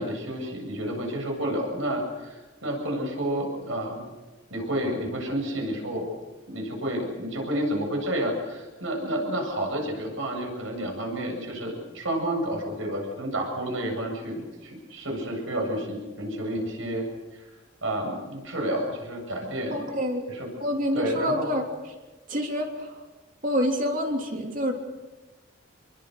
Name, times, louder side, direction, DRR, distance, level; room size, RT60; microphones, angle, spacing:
voice 1, 0.0-4.0 4.5-6.1 6.5-17.0 17.3-17.5 17.8-19.8 20.3-20.5 20.9-21.5, right 1 dB, 90° right, 2 dB, 7.7 m, -30 dB
voice 2, 19.7-20.3 20.6-21.7 22.3-23.0 23.4-24.7, equal, 40° right, 2 dB, 3.3 m, -27 dB
28.0 x 23.0 x 6.6 m, 1.2 s
head